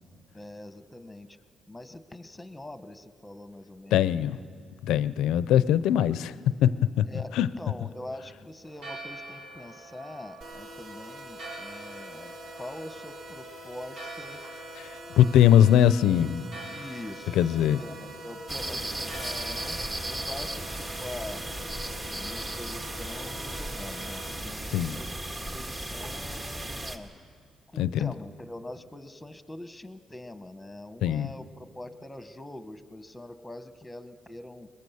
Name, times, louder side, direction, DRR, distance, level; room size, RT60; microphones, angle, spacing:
voice 1, 0.3-1.4 1.7-4.4 7.1-14.4 15.6-15.9 16.7-21.5 22.1-27.1 27.7-34.7, left 1 dB, 10° left, 10 dB, 1.1 m, -43 dB
voice 2, 3.9-4.4 4.8-6.3 6.6-7.1 7.4-7.5 15.2-16.5 17.4-17.8 24.7-25.0 27.8-28.1 31.0-31.3, left 10 dB, 90° left, 16 dB, 0.5 m, -21 dB
Church bell, 8.6-22.7, right 1 dB, 80° right, 6.6 m, -47 dB
sound 1, 10.4-24.4, right 1 dB, 60° right, 3.0 m, -45 dB
sound 2, 18.5-27.0, right 1 dB, 30° right, 1.8 m, -35 dB
21.5 x 21.5 x 7.0 m, 2.1 s
cardioid pair, 90°, 0 cm